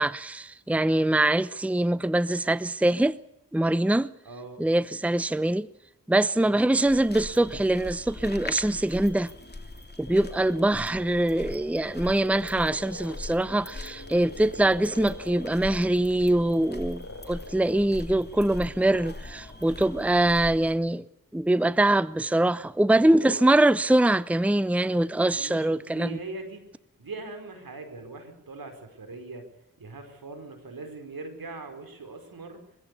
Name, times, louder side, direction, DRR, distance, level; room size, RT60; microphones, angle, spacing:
voice 1, 0.0-3.2 3.5-4.1 4.6-5.7 6.1-9.3 10.0-21.0 21.3-26.2, right 1 dB, 5° right, 0.8 m, -23 dB
voice 2, 4.2-4.7 6.4-6.9 22.9-23.5 25.2-26.6 27.0-29.5 29.8-32.7, right 3 dB, 85° right, 4.9 m, -41 dB
sound 1, 6.8-20.7, left 2 dB, 30° left, 3.0 m, -41 dB
sound 2, 10.0-18.0, left 1 dB, 45° left, 7.8 m, -45 dB
23.0 x 16.0 x 8.4 m
cardioid pair, 50°, 34 cm